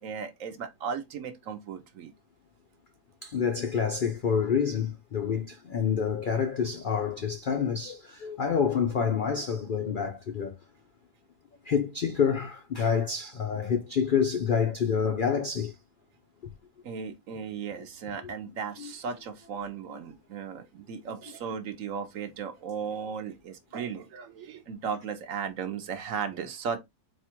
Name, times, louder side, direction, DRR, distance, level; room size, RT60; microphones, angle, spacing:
voice 1, 0.0-2.1 16.8-26.8, right 6 dB, 65° right, 1.1 m, -36 dB
voice 2, 3.2-10.5 11.6-15.7 18.8-18.9, left 7 dB, 75° left, 0.4 m, -28 dB
4.3 x 2.3 x 4.4 m
omnidirectional pair, 1.6 m